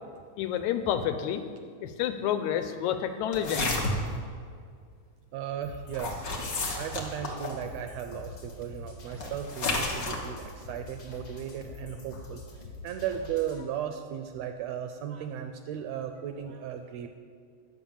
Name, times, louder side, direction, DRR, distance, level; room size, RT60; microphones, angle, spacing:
voice 1, 0.4-1.4 1.8-3.8, left 9 dB, 85° left, 9 dB, 1.9 m, -29 dB
sound 1, 3.3-4.2 5.9-7.6 9.2-10.2, left 2 dB, 55° left, 0.9 m, -31 dB
voice 2, 5.3-6.3 6.7-12.4 12.8-17.1, right 9 dB, 80° right, 7 dB, 1.5 m, -36 dB
sound 2, 5.6-13.6, left 2 dB, 35° left, 1.6 m, -45 dB
9.5 x 6.2 x 7.1 m, 2.2 s
omnidirectional pair, 3.4 m